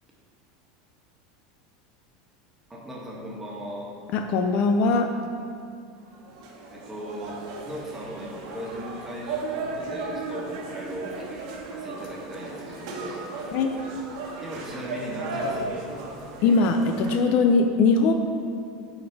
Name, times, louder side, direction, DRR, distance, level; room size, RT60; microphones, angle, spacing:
voice 1, 2.7-3.9 6.7-7.4 7.6-13.2 14.4-15.7, equal, 10° right, -4 dB, 1.6 m, -37 dB
voice 2, 4.1-5.1 13.5-13.8 16.4-18.1, left 4 dB, 50° left, 5 dB, 0.5 m, -21 dB
sound 1, 6.1-17.2, right 3 dB, 70° right, 1.3 m, -35 dB
9.6 x 4.3 x 4.7 m, 2.3 s
supercardioid pair, 140°, 3 cm